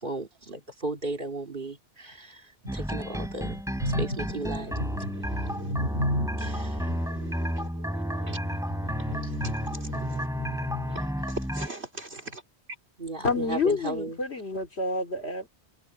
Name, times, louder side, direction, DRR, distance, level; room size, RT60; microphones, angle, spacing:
voice 1, 0.0-3.6 3.8-4.7 6.4-6.9 9.2-9.3 13.0-14.2, right 2 dB, 50° right, 2.7 m, -35 dB
sound 1, 2.7-11.7, equal, 5° right, 5.9 m, -32 dB
voice 2, 3.8-12.4, equal, 70° right, 3.7 m, -35 dB
voice 3, 13.2-15.5, left 3 dB, 70° left, 3.5 m, -28 dB
omnidirectional pair, 1.1 m